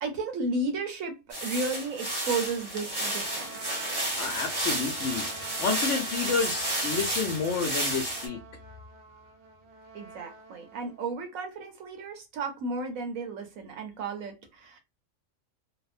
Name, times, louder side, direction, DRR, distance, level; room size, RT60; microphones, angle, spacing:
voice 1, 0.0-3.7 9.9-14.8, right 3 dB, 80° right, 1.1 m, -33 dB
sound 1, 1.3-8.3, right 1 dB, 20° right, 0.7 m, -32 dB
Trumpet, 2.9-11.0, right 3 dB, 60° right, 0.8 m, -45 dB
voice 2, 4.2-8.4, left 5 dB, 70° left, 0.9 m, -30 dB
2.8 x 2.0 x 2.4 m
omnidirectional pair, 1.4 m